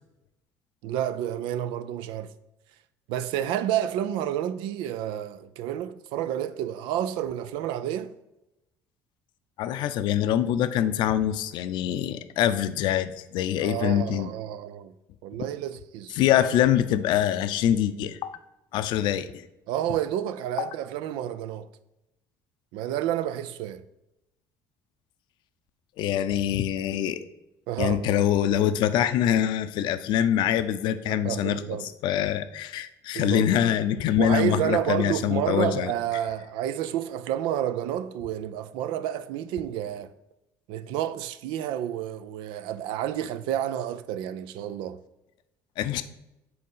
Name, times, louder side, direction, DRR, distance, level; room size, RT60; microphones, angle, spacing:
voice 1, 0.8-2.3 3.1-8.1 13.6-14.9 15.2-16.2 19.7-21.7 22.7-23.8 27.7-28.2 31.1-31.9 33.1-33.5 34.2-40.1 40.7-45.0, right 11 dB, 80° right, 0.5 m, -30 dB
voice 2, 9.6-14.3 16.2-18.3 18.7-19.4 20.6-20.7 26.0-27.2 27.8-31.8 32.0-35.9 45.8-46.0, left 10 dB, 70° left, 0.5 m, -24 dB
7.8 x 4.0 x 5.5 m
supercardioid pair, 100°, 8 cm